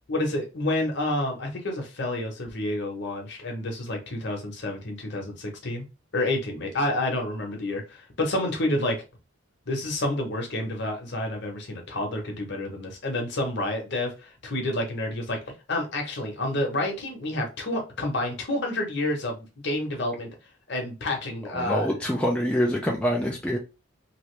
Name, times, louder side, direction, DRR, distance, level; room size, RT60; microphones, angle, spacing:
voice 1, 0.1-5.8 6.1-9.0 9.7-20.3 20.7-21.9, left 1 dB, 55° left, 1.0 m, -29 dB
voice 2, 21.5-23.6, equal, 5° left, 0.4 m, -25 dB
2.9 x 2.6 x 3.2 m
head